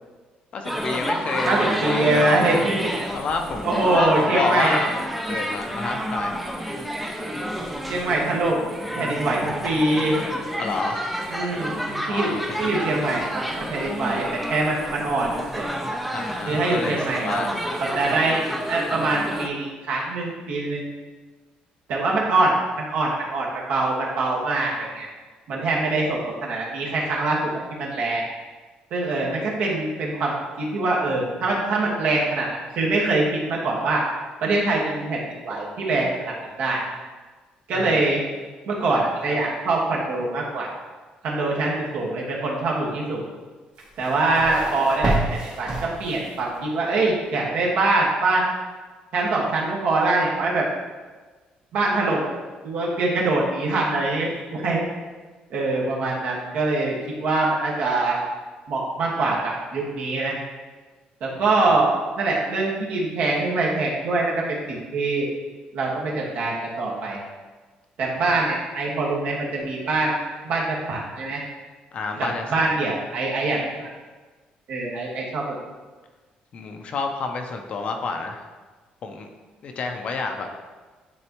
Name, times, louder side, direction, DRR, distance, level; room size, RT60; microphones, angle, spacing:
voice 1, 0.5-2.2 3.1-6.3 10.6-11.1 12.1-12.6 16.1-17.0 17.2-17.6 37.7-38.0 61.3-61.7 68.2-68.3 71.9-72.7 76.5-78.5 79.0-79.3 79.6-80.5, left 4 dB, 40° left, 4 dB, 0.6 m, -29 dB
sound 1, 0.6-19.5, equal, ahead, 0.5 m, -29 dB
voice 2, 1.4-2.8 3.6-4.8 7.9-8.6 8.9-10.2 11.3-12.3 12.6-15.8 16.5-17.4 17.7-18.4 18.7-21.0 21.9-25.1 25.5-28.2 28.9-34.0 34.4-36.8 37.7-38.2 38.6-40.7 41.2-43.2 44.0-45.7 46.0-48.4 49.1-50.7 51.7-52.3 52.6-54.8 55.5-58.2 58.7-60.3 61.2-61.9 62.2-65.3 65.7-67.2 68.0-70.1 70.4-71.4 72.2-73.9 74.7-75.6, right 2 dB, 65° right, -3 dB, 1.6 m, -24 dB
sound 2, 43.8-46.5, right 2 dB, 30° right, 1.1 m, -28 dB
9.7 x 4.0 x 3.0 m, 1.3 s
cardioid pair, 170°, 3 cm